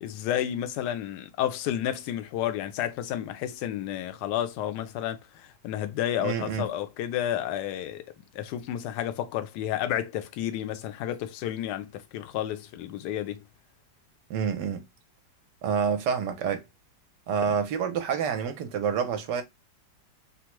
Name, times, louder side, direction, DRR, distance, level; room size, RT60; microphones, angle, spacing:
voice 1, 0.0-8.0 8.3-13.4 17.5-17.6, left 11 dB, 75° left, 1.1 m, -31 dB
voice 2, 6.2-6.6 14.3-14.8 15.6-16.6 17.3-19.4, right 7 dB, 70° right, 1.2 m, -28 dB
3.5 x 2.0 x 2.9 m
omnidirectional pair, 2.0 m